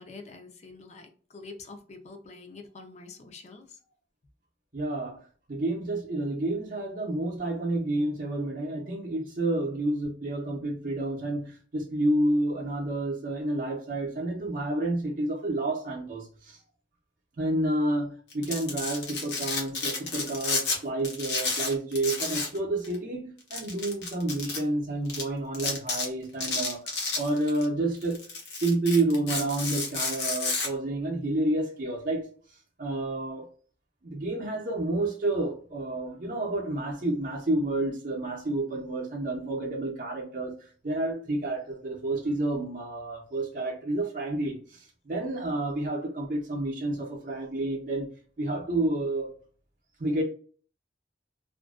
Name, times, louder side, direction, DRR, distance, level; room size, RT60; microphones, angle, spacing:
voice 1, 0.0-3.8, left 3 dB, 40° left, 0.5 m, -46 dB
voice 2, 4.7-16.6 17.4-28.2 28.6-32.3 32.8-33.5 34.0-48.1 48.4-49.3 50.0-50.2, right 2 dB, 50° right, 0.6 m, -30 dB
Domestic sounds home sounds, 18.3-20.8 21.0-22.6 22.8-23.0 23.5-24.6 25.1-25.2 25.5-26.1 26.4-27.6 28.0-30.7, left 4 dB, 65° left, 0.9 m, -31 dB
2.5 x 2.2 x 2.3 m
head